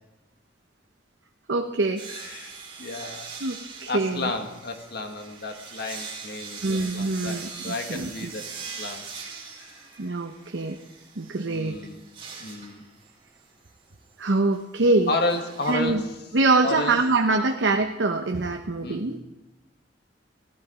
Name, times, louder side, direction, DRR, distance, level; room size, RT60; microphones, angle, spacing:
voice 1, 1.5-2.0 3.4-4.3 6.6-8.1 10.0-10.8 11.2-11.8 14.2-15.1 15.6-16.0 16.3-19.2, right 3 dB, 90° right, 4 dB, 0.8 m, -24 dB
sound 1, 2.0-17.3, right 5 dB, 30° right, 2.7 m, -42 dB
voice 2, 2.1-2.5 2.8-3.3 3.9-8.5 8.8-9.1 9.6-9.7 11.4-12.0 12.4-12.8 15.1-16.0 16.6-16.9 18.8-19.0, left 2 dB, 60° left, 5 dB, 1.5 m, -31 dB
15.0 x 13.0 x 5.0 m, 1.0 s
head